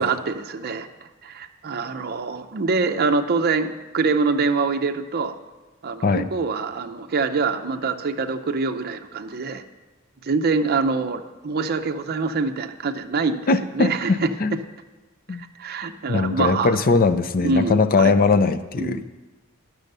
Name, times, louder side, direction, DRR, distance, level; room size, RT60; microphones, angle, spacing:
voice 1, 0.0-5.4 5.8-9.6 10.2-13.4 13.7-14.3 15.3-16.7 17.4-18.1 18.8-19.0, right 4 dB, 45° right, 7 dB, 0.6 m, -25 dB
voice 2, 13.5-14.6 15.3-15.4 16.1-19.0, left 4 dB, 40° left, 11 dB, 0.5 m, -20 dB
12.0 x 6.2 x 6.6 m, 1.2 s
head